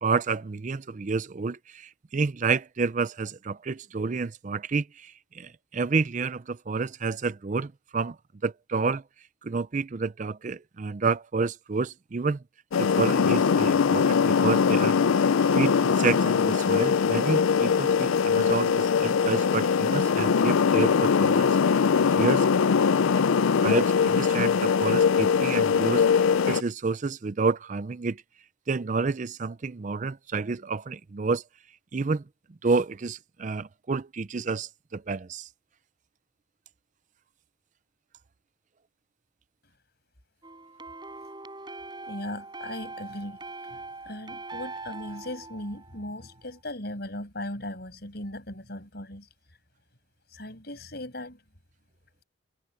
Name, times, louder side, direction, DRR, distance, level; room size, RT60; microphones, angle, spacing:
voice 1, 0.0-8.2 8.4-9.0 9.4-12.4 12.8-15.2 15.5-22.4 23.6-28.2 28.7-31.4 31.9-32.2 32.6-35.5, right 4 dB, 35° right, 0.4 m, -29 dB
sound 1, 12.7-26.6, left 6 dB, 80° left, 0.4 m, -22 dB
sound 2, 40.4-46.4, right 3 dB, 20° right, 6.5 m, -42 dB
voice 2, 42.1-43.4 43.7-43.8 44.1-49.3 50.3-51.4, left 1 dB, 50° left, 6.3 m, -38 dB
head